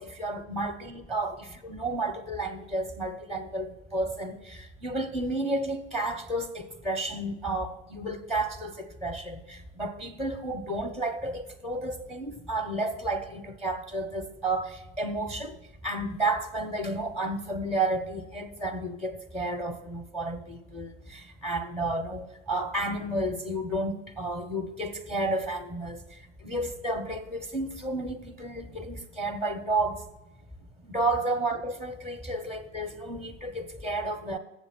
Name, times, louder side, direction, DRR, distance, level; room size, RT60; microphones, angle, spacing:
voice 1, 0.0-15.5 15.8-26.0 26.4-30.0 30.9-34.4, right 2 dB, ahead, 0.7 m, -32 dB
7.8 x 7.1 x 5.9 m
hypercardioid pair, 100°, 35 cm